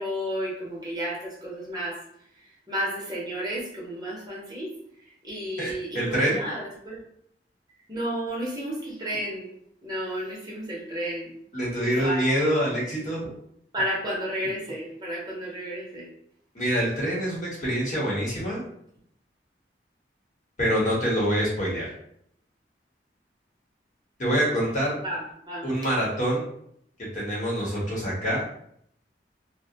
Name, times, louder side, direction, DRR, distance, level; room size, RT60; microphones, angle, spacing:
voice 1, 0.0-2.0 2.7-4.7 5.2-7.0 7.9-9.5 9.8-11.3 11.8-12.4 13.7-16.1 25.0-25.6, equal, 20° right, -5 dB, 0.6 m, -32 dB
voice 2, 5.6-6.4 11.5-13.3 16.5-18.6 20.6-21.9 24.2-25.0 25.6-26.5 27.1-28.4, equal, 45° left, -6 dB, 1.0 m, -25 dB
2.4 x 2.1 x 2.7 m, 0.69 s
head